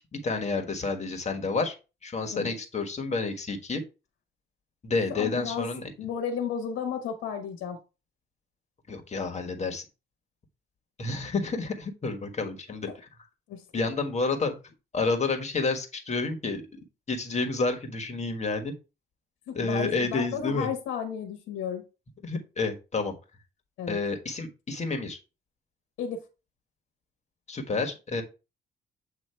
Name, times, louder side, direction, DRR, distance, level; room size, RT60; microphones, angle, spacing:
voice 1, 0.0-1.7 2.0-3.8 4.8-5.9 8.9-9.8 11.0-12.9 13.7-14.5 14.9-16.6 17.1-18.7 19.5-20.7 22.2-23.1 23.9-25.2 27.5-28.2, left 3 dB, 35° left, 5 dB, 1.5 m, -29 dB
voice 2, 5.1-5.7 6.0-7.8 12.9-13.0 13.5-13.9 19.5-21.8 23.8-24.0 26.0-26.2, left 7 dB, 90° left, 4 dB, 1.1 m, -33 dB
8.1 x 2.9 x 4.4 m, 0.30 s
cardioid pair, 90°, 20 cm